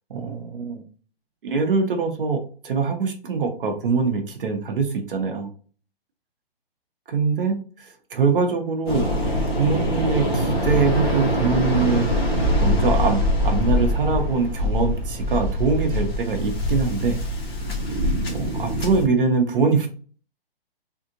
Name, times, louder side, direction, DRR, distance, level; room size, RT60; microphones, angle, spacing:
voice 1, 0.1-0.8 1.4-2.4 2.6-5.5 7.1-9.1 9.6-12.1 12.5-17.2 18.3-19.9, right 4 dB, 60° right, 4 dB, 0.9 m, -23 dB
Waves surf, 8.9-19.1, left 1 dB, 25° left, 1.1 m, -23 dB
3.6 x 2.4 x 2.8 m, 0.41 s
hypercardioid pair, 165°, 30 cm